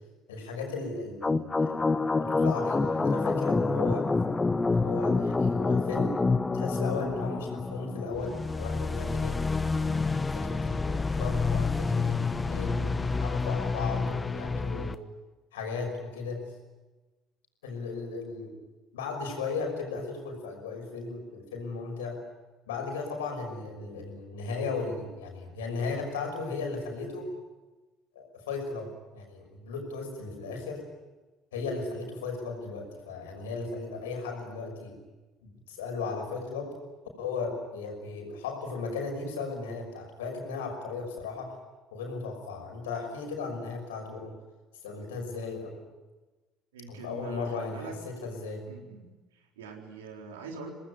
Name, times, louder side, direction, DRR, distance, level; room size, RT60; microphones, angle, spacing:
voice 1, 0.3-1.9 2.2-4.1 4.6-6.2 6.5-9.4 10.1-15.0 15.5-16.5 17.6-18.6 18.9-22.2 22.7-27.3 28.1-30.8 31.5-35.0 35.4-36.7 37.2-41.6 41.9-44.3 44.8-45.9 46.9-48.6, left 4 dB, 85° left, 3 dB, 6.0 m, -36 dB
sound 1, 1.2-14.9, left 3 dB, 25° left, 1.2 m, -28 dB
voice 2, 46.7-48.0 48.7-49.1 49.3-50.7, right 4 dB, 85° right, 2 dB, 4.0 m, -43 dB
26.0 x 19.0 x 9.6 m, 1.2 s
hypercardioid pair, 60°, 0 cm